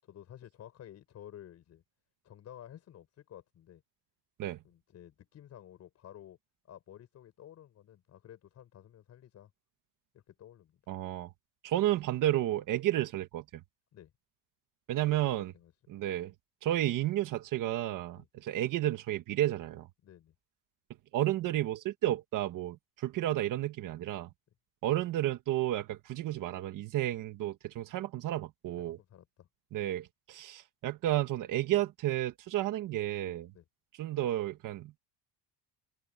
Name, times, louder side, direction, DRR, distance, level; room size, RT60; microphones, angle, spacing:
voice 1, 0.0-1.8 2.2-3.8 4.6-6.4 6.7-9.5 10.1-10.8 13.9-14.1 15.2-15.7 18.1-18.3 20.0-20.3 28.8-29.5 33.5-33.7, left 11 dB, 40° left, 7.0 m, -52 dB
voice 2, 10.9-11.3 11.6-13.4 14.9-15.5 15.9-16.3 16.6-19.9 21.1-24.3 24.8-29.0 29.7-33.5 34.0-35.0, right 13 dB, 50° right, 1.6 m, -32 dB
cardioid pair, 175°, 39 cm